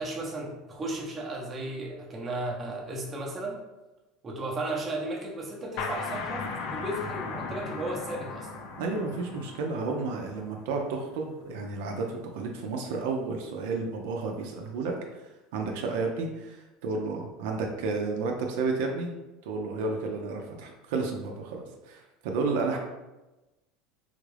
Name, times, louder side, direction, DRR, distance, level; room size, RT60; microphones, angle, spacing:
voice 1, 0.0-3.6 4.2-8.7 22.7-22.8, right 2 dB, 20° right, -2 dB, 0.7 m, -35 dB
sound 1, 5.8-11.2, left 4 dB, 60° left, 0.5 m, -37 dB
voice 2, 8.8-15.2 15.5-19.1 19.4-22.8, right 3 dB, 80° right, 1 dB, 0.6 m, -32 dB
3.5 x 2.4 x 3.3 m, 1.0 s
supercardioid pair, 140°, 0 cm